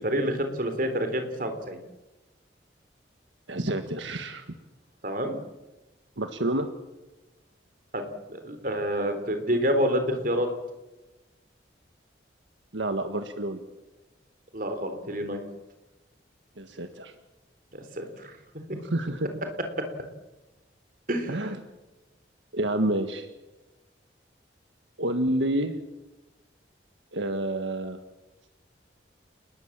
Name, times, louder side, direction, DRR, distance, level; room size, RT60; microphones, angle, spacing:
voice 1, 0.0-1.8 5.0-5.4 7.9-10.5 14.5-15.4 18.0-18.3 18.7-18.8 19.8-19.9 21.1-21.6, equal, 45° right, 7 dB, 3.8 m, -28 dB
voice 2, 3.5-4.4 6.2-6.7 12.7-13.6 16.6-17.2 18.8-19.3 21.3-21.6 22.5-23.3 25.0-25.8 27.1-28.0, right 1 dB, 80° right, 7 dB, 1.6 m, -28 dB
29.5 x 20.0 x 7.5 m, 1.1 s
head